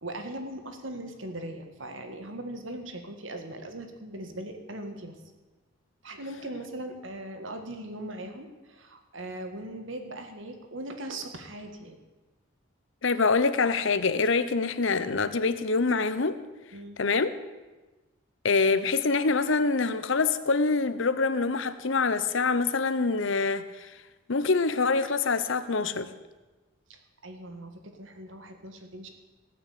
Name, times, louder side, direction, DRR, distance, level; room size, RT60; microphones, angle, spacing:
voice 1, 0.0-5.2 6.0-12.0 16.7-17.0 26.9-29.1, right 1 dB, 70° right, 5 dB, 1.8 m, -39 dB
voice 2, 13.0-16.4 17.0-17.3 18.4-23.9 24.3-26.1, left 4 dB, 70° left, 13 dB, 0.8 m, -25 dB
17.5 x 6.0 x 8.5 m, 1.2 s
head